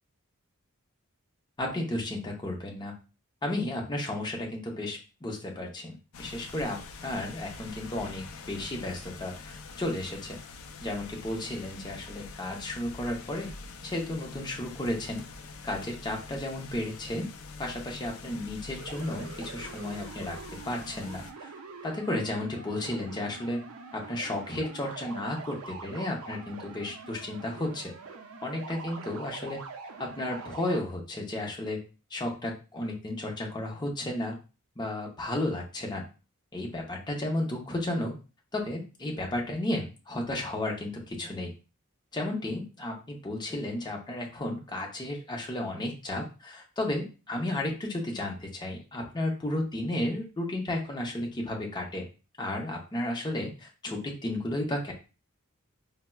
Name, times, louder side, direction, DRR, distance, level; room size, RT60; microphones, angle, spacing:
voice 1, 1.6-2.9 3.4-10.4 10.8-13.5 13.8-15.2 15.6-17.3 17.6-20.4 20.6-21.5 21.8-23.6 23.9-27.9 28.4-29.6 30.0-31.8 32.1-34.4 34.8-36.0 36.5-38.1 38.5-41.5 42.1-52.0 52.4-54.9, left 1 dB, 20° left, 0 dB, 0.6 m, -33 dB
sound 1, 6.1-21.3, left 4 dB, 70° left, 0.4 m, -45 dB
sound 2, 18.8-30.8, right 4 dB, 75° right, 0.4 m, -44 dB
4.3 x 2.0 x 2.2 m, 0.32 s
head